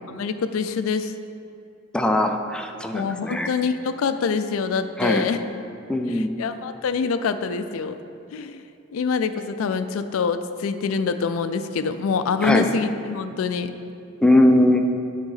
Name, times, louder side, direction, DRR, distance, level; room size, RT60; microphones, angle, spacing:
voice 1, 0.1-1.1 2.9-5.4 6.1-8.0 8.3-8.6 8.9-13.7, left 5 dB, 85° left, 10 dB, 0.4 m, -25 dB
voice 2, 1.9-3.5 5.0-5.2 5.9-6.3 12.4-12.7 14.2-14.8, left 1 dB, 5° left, 4 dB, 0.4 m, -20 dB
8.9 x 3.7 x 5.6 m, 2.6 s
head